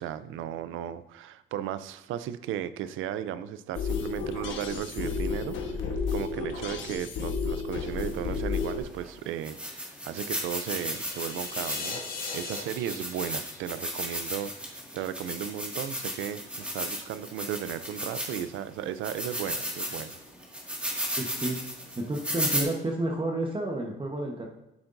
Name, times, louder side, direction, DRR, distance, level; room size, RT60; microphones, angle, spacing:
voice 1, 0.0-12.0 12.3-20.1, right 10 dB, 85° right, 14 dB, 0.5 m, -35 dB
sound 1, 3.7-8.8, left 5 dB, 75° left, 1.2 m, -32 dB
sound 2, 8.3-8.4 9.0-9.1 9.4-18.6 19.0-22.6, equal, 5° right, 2.0 m, -35 dB
sound 3, 10.5-14.5, left 4 dB, 50° left, 1.9 m, -40 dB
voice 2, 21.2-21.6 21.9-24.5, right 2 dB, 25° right, 1 dB, 1.1 m, -30 dB
9.3 x 7.0 x 2.6 m, 0.93 s
cardioid pair, 90°, 20 cm